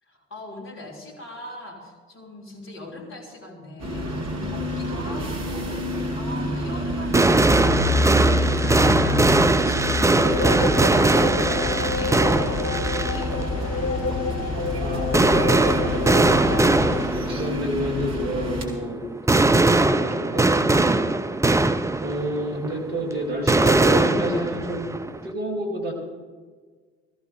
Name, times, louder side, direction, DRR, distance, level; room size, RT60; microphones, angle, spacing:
voice 1, 0.1-13.4, left 1 dB, 40° left, -3 dB, 3.6 m, -40 dB
sound 1, 3.8-18.7, left 1 dB, 50° right, 2.3 m, -28 dB
sound 2, 6.5-6.6 6.9-25.3, right 2 dB, 10° right, 0.6 m, -21 dB
sound 3, 10.2-17.1, left 4 dB, 60° left, 1.3 m, -29 dB
voice 2, 14.8-16.5 17.1-19.0 19.3-21.1 22.0-24.9 25.2-25.9, right 1 dB, 70° right, 0 dB, 2.5 m, -29 dB
18.0 x 14.0 x 3.3 m, 1.5 s
figure-of-eight pair, 50°, 32 cm